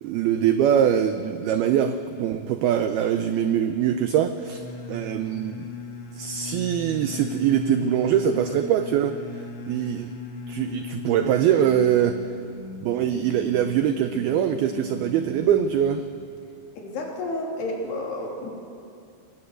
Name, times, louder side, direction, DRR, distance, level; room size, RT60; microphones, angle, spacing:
voice 1, 0.0-5.7 6.1-10.1 10.5-12.2 12.8-16.1, right 9 dB, 85° right, 9 dB, 2.2 m, -23 dB
sound 1, 4.4-16.3, left 4 dB, 80° left, 4.5 m, -38 dB
voice 2, 16.8-18.5, left 2 dB, 60° left, -1 dB, 4.9 m, -31 dB
22.5 x 19.5 x 8.1 m, 2.4 s
omnidirectional pair, 5.4 m